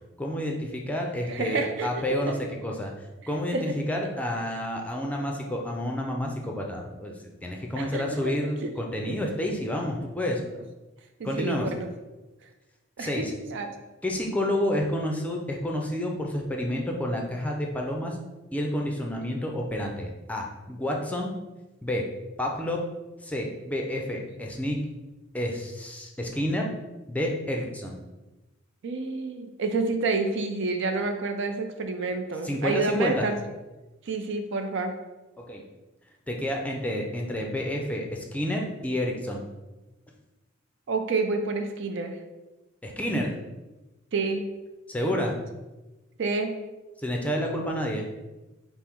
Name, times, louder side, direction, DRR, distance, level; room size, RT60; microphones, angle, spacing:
voice 1, 0.2-2.4 2.6-7.1 7.4-10.4 11.2-11.7 13.0-13.3 14.0-18.2 18.5-21.3 21.8-22.0 22.4-22.8 23.2-24.8 25.3-26.7 27.1-28.0 32.4-33.3 35.4-35.6 36.3-39.5 42.8-43.3 44.9-45.4 47.0-48.1, left 1 dB, 5° left, 1 dB, 0.5 m, -29 dB
voice 2, 1.3-1.9 3.5-3.6 7.7-8.0 8.6-8.7 11.2-11.9 13.0-13.7 28.8-33.4 34.1-34.9 40.9-42.2 44.1-44.4 46.2-46.5, right 3 dB, 65° right, 6 dB, 0.5 m, -28 dB
5.4 x 2.1 x 4.5 m, 1.1 s
head